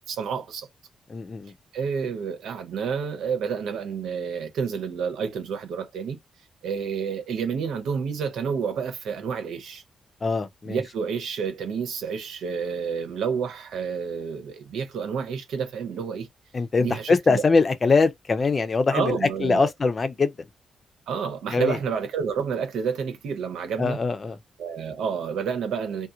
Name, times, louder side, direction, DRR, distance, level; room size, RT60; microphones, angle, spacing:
voice 1, 0.1-0.7 1.7-6.2 6.6-9.8 10.7-16.3 16.8-17.4 18.9-19.7 21.1-24.0 24.6-26.1, right 6 dB, 90° right, 0.9 m, -29 dB
voice 2, 1.1-1.5 10.2-10.8 16.5-20.3 21.5-21.8 23.8-24.4, left 4 dB, 35° left, 0.6 m, -22 dB
2.8 x 2.0 x 3.7 m
cardioid pair, 115°, 0 cm